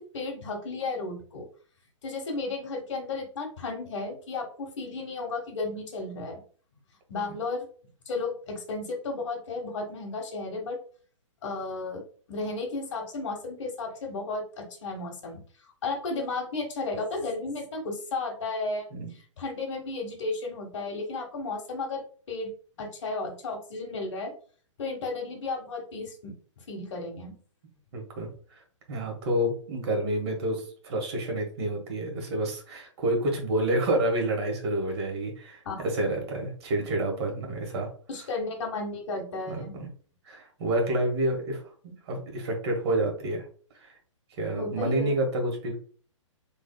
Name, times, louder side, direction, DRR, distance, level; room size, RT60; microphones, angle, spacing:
voice 1, 0.1-1.5 2.0-6.4 7.1-7.7 8.1-10.8 11.4-12.0 12.3-15.4 15.8-18.9 19.4-22.0 22.3-22.5 22.8-24.3 24.8-26.3 26.7-27.3 35.6-35.9 38.1-39.7 44.5-45.1, left 3 dB, 65° left, 2 dB, 1.3 m, -33 dB
voice 2, 27.9-28.6 28.9-37.9 39.5-39.9 40.2-43.4 43.8-43.9 44.4-45.8, right 1 dB, 55° right, 1 dB, 1.4 m, -29 dB
3.6 x 3.2 x 2.2 m, 0.44 s
hypercardioid pair, 135°, 16 cm